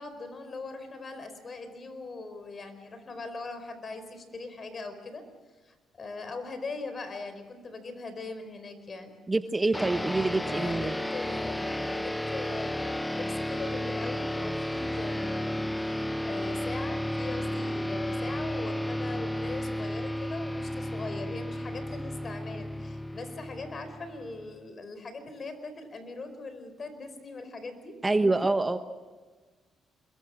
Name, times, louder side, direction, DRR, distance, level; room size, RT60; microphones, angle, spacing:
voice 1, 0.0-5.3 5.6-9.1 10.4-28.0, left 3 dB, 40° left, 9 dB, 4.5 m, -40 dB
voice 2, 9.3-10.9 28.0-28.8, right 2 dB, 20° right, 9 dB, 1.1 m, -26 dB
sound 1, 9.7-24.5, left 1 dB, 10° left, 0.7 m, -33 dB
27.0 x 21.5 x 6.3 m, 1.4 s
cardioid pair, 90°, 0 cm